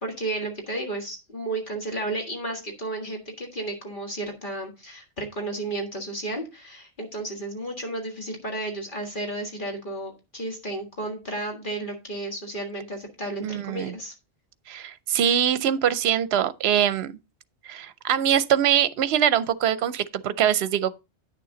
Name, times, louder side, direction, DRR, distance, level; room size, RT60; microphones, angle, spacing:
voice 1, 0.0-14.1, right 2 dB, 45° left, 1.9 m, -33 dB
voice 2, 13.4-13.9 14.7-17.2 17.7-20.9, right 9 dB, 70° right, 0.9 m, -23 dB
9.7 x 6.8 x 3.8 m
omnidirectional pair, 1.2 m